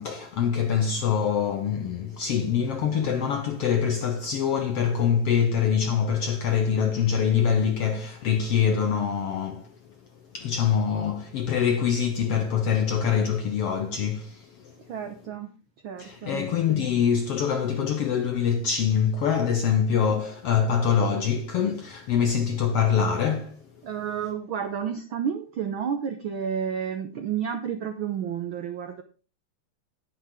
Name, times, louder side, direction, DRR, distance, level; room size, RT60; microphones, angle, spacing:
voice 1, 0.0-9.7 10.3-14.5 16.0-23.6, left 7 dB, 65° left, 1.6 m, -24 dB
voice 2, 14.9-15.5 15.8-16.4 19.7-19.8 23.8-29.0, right 8 dB, 85° right, 1.1 m, -31 dB
10.5 x 10.5 x 3.6 m
omnidirectional pair, 3.4 m